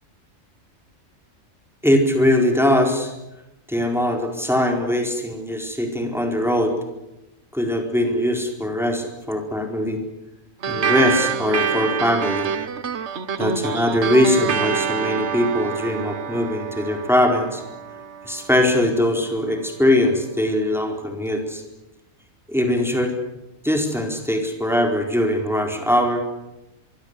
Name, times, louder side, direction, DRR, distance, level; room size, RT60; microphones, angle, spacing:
voice 1, 1.8-3.1 3.7-6.8 7.5-10.0 10.7-12.5 13.4-17.6 18.2-21.6 22.5-23.1 23.6-26.2, left 1 dB, ahead, 3 dB, 4.4 m, -21 dB
sound 1, 10.6-19.4, right 7 dB, 60° right, 1.4 m, -27 dB
24.5 x 24.0 x 8.3 m, 0.94 s
omnidirectional pair, 1.4 m